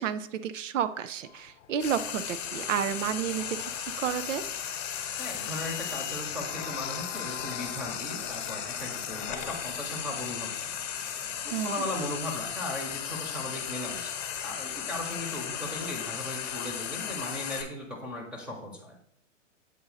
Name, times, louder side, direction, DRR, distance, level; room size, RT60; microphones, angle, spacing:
voice 1, 0.0-3.7 4.0-4.4 11.5-11.8, right 9 dB, 80° right, 13 dB, 0.6 m, -31 dB
sound 1, 1.3-2.3 2.9-10.4, left 12 dB, 60° left, 0.7 m, -46 dB
Frying (food), 1.8-17.6, left 9 dB, 35° left, 1.1 m, -36 dB
voice 2, 5.2-10.8 11.4-19.0, left 1 dB, 5° right, -1 dB, 1.0 m, -37 dB
sound 2, 5.9-13.2, right 4 dB, 55° right, 1.1 m, -54 dB
7.6 x 2.7 x 5.6 m, 0.67 s
hypercardioid pair, 145°, 38 cm